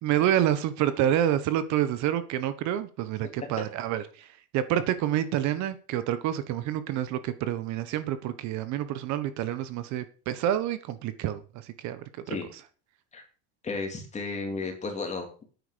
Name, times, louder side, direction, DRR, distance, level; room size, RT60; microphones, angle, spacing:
voice 1, 0.0-4.3 4.5-12.4, right 11 dB, 55° right, 1.3 m, -28 dB
voice 2, 13.6-15.4, left 3 dB, 20° left, 2.9 m, -33 dB
11.0 x 9.5 x 5.2 m
cardioid pair, 155°, 35 cm